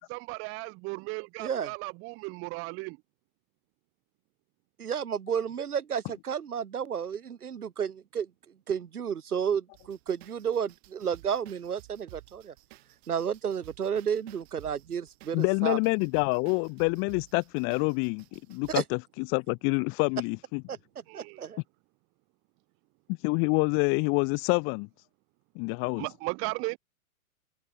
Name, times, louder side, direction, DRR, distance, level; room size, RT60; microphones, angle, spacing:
voice 1, 0.1-3.0 21.1-21.4 26.0-26.8, right 28 dB, 30° right, 1.2 m, -36 dB
voice 2, 1.4-1.7 4.8-8.3 8.7-12.5 13.1-15.8 18.7-18.8 20.7-20.8 21.1-21.6, right 7 dB, 85° right, 4.9 m, -32 dB
sound 1, 9.7-18.8, right 21 dB, 45° right, 6.5 m, -54 dB
voice 3, 15.3-19.0 19.3-20.6 23.2-24.9 25.5-26.1, left 34 dB, 30° left, 1.1 m, -27 dB
open air
hypercardioid pair, 135°, 44 cm